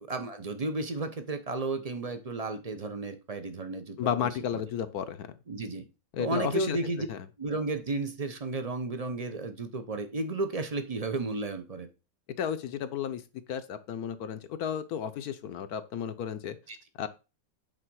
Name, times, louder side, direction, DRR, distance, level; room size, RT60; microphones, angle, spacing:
voice 1, 0.1-4.6 5.5-5.9 6.2-7.1 7.4-11.9 16.7-16.8, right 3 dB, 40° right, 8 dB, 0.5 m, -33 dB
voice 2, 4.0-5.3 6.1-6.8 7.1-7.2 12.4-13.2 13.5-16.6 17.0-17.1, left 8 dB, 65° left, 11 dB, 1.1 m, -33 dB
8.9 x 3.6 x 6.2 m, 0.29 s
omnidirectional pair, 1.9 m